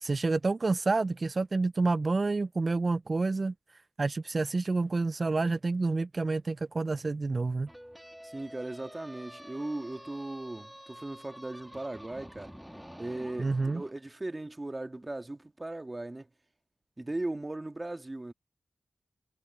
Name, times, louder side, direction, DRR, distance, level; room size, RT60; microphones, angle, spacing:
voice 1, 0.0-3.5 4.0-7.7 13.4-13.8, right 3 dB, 50° right, 0.4 m, -28 dB
sound 1, 7.7-13.9, equal, ahead, 2.2 m, -49 dB
voice 2, 8.2-12.5 13.0-16.3 17.0-18.3, right 2 dB, 30° right, 1.8 m, -38 dB
cardioid pair, 60°, 0 cm